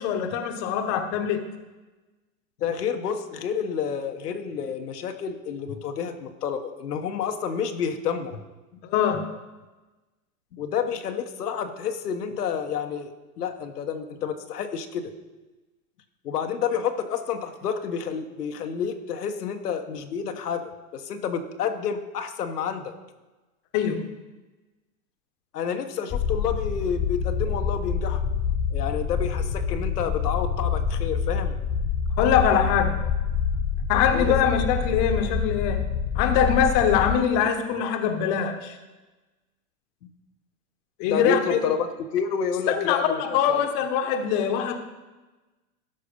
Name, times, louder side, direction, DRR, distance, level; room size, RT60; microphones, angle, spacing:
voice 1, 0.0-1.4 8.8-9.3 23.7-24.0 32.2-33.0 33.9-35.8 36.1-38.8 41.0-41.6 42.7-44.8, left 8 dB, 40° left, 7 dB, 1.2 m, -23 dB
voice 2, 2.6-8.3 10.5-13.1 13.4-15.1 16.2-22.9 25.5-28.2 28.7-31.6 34.1-34.3 41.0-43.2 43.5-43.6, left 7 dB, 85° left, 6 dB, 1.2 m, -29 dB
sound 1, 26.1-37.2, left 7 dB, 15° left, 0.5 m, -27 dB
13.0 x 5.7 x 5.3 m, 1.1 s
hypercardioid pair, 130°, 45 cm